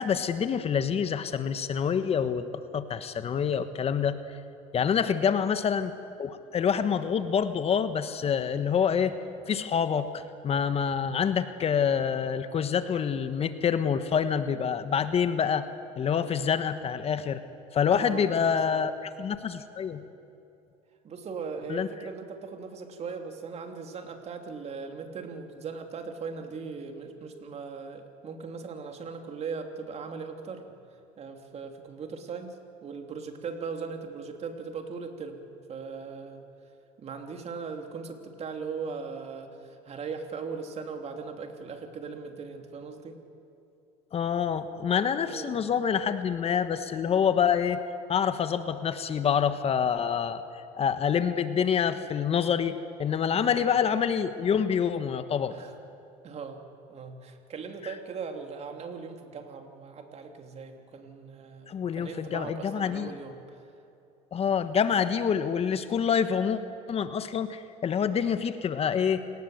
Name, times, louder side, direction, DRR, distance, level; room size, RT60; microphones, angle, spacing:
voice 1, 0.0-4.2 4.7-5.9 6.2-9.1 9.5-15.6 16.0-17.4 17.7-18.9 19.2-20.0 21.7-21.9 44.1-47.8 48.1-50.4 50.7-55.6 57.8-57.9 61.7-63.1 64.3-66.6 66.9-69.2, left 7 dB, 40° left, 11 dB, 1.3 m, -27 dB
voice 2, 17.9-18.8 21.0-30.8 31.2-35.4 35.7-36.4 37.0-43.2 45.3-45.6 53.3-53.7 55.5-55.7 56.2-56.6 56.9-63.6, right 5 dB, 40° right, 5 dB, 3.2 m, -39 dB
28.0 x 19.5 x 8.1 m, 2.8 s
supercardioid pair, 95°, 16 cm